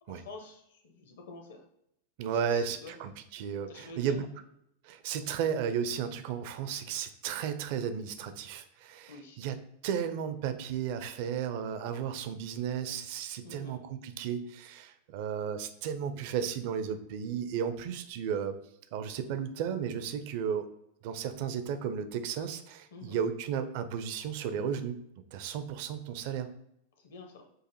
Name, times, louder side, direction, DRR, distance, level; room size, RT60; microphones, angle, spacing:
voice 1, 0.0-1.6 2.3-3.0 3.7-4.2 9.1-9.4 13.4-13.8 22.9-23.2 27.0-27.5, left 3 dB, 60° left, 4 dB, 0.8 m, -48 dB
voice 2, 2.2-4.3 4.8-9.6 9.8-18.6 18.9-20.7 21.0-25.0 25.3-26.5, right 7 dB, 50° right, 10 dB, 0.4 m, -34 dB
6.3 x 2.5 x 2.7 m, 0.77 s
figure-of-eight pair, 90°, 0 cm